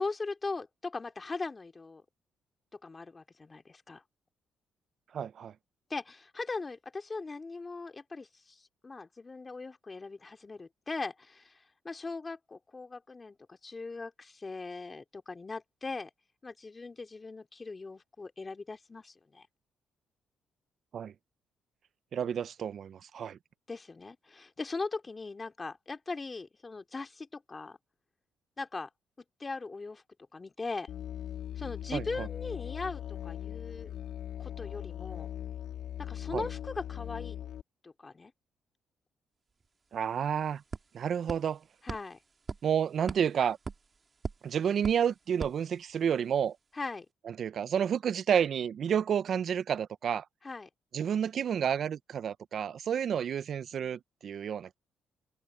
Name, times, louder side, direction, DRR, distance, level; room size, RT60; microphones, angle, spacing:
voice 1, 0.0-2.0 2.7-4.0 5.9-16.1 16.4-19.5 23.7-27.8 28.6-28.9 29.4-30.0 30.3-30.9 31.6-33.9 34.4-35.3 36.0-37.4 37.8-38.3 41.8-42.2 46.7-47.1 50.4-50.7, left 3 dB, 25° left, 2.8 m, -39 dB
voice 2, 5.1-5.5 20.9-21.1 22.1-23.4 31.9-32.3 36.3-36.4 39.9-40.6 40.9-41.6 42.6-43.6 44.4-46.6 47.4-50.2 50.9-54.7, right 8 dB, 60° right, 0.6 m, -30 dB
Musical instrument, 30.9-37.6, left 10 dB, 75° left, 3.2 m, -40 dB
sound 1, 39.6-39.7 39.9-46.3, right 4 dB, 35° right, 3.1 m, -43 dB
cardioid pair, 90°, 0 cm